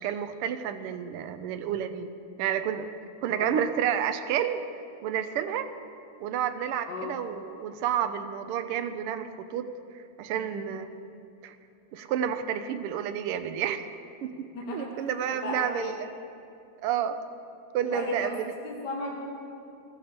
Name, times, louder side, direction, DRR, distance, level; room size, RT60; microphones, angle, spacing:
voice 1, 0.0-2.1 2.4-2.9 3.2-4.6 5.0-5.7 6.2-9.7 9.9-10.9 11.4-11.6 11.9-13.8 14.2-16.1 16.8-17.2 17.7-18.6, right 9 dB, 90° right, 10 dB, 1.6 m, -30 dB
voice 2, 14.5-14.9 15.4-15.9 17.8-18.3 18.6-19.1, left 2 dB, 55° left, -2 dB, 1.9 m, -35 dB
14.0 x 13.5 x 4.3 m, 2.5 s
omnidirectional pair, 2.4 m